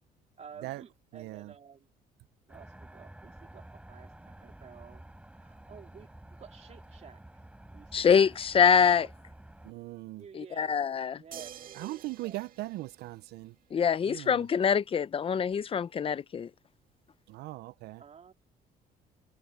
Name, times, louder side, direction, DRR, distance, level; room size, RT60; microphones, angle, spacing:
voice 1, 0.4-1.9 2.5-5.0 5.3-7.2 7.7-8.2 8.8-9.1 10.2-12.4 18.0-18.3, right 7 dB, 40° right, 2.8 m, -52 dB
voice 2, 1.1-1.5 9.6-10.2 11.7-13.5 14.0-14.4 17.3-18.0, right 19 dB, 80° right, 0.4 m, -39 dB
sound 1, 2.5-9.7, right 1 dB, 5° right, 4.5 m, -51 dB
voice 3, 7.9-9.1 10.3-11.2 13.7-16.5, left 7 dB, 35° left, 0.7 m, -25 dB
sound 2, 11.3-13.8 15.5-15.6, right 10 dB, 55° right, 2.1 m, -49 dB
cardioid pair, 110°, 17 cm